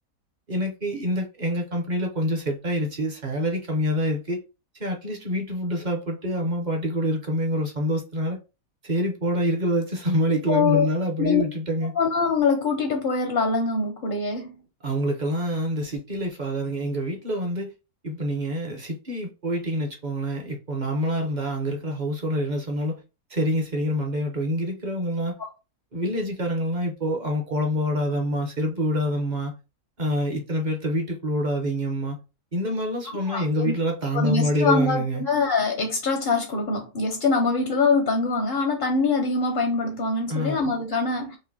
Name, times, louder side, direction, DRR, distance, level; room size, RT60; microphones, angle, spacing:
voice 1, 0.5-4.4 4.8-8.4 8.8-11.9 14.8-17.7 18.0-23.0 23.3-25.4 25.9-29.5 30.0-32.2 32.5-35.2 40.3-40.6, equal, 40° right, 0.7 m, -26 dB
voice 2, 10.5-10.9 11.2-11.4 12.0-14.6 25.4-25.5 33.3-33.7 34.1-41.4, left 4 dB, 55° left, 0.6 m, -24 dB
5.0 x 2.2 x 2.6 m
omnidirectional pair, 1.5 m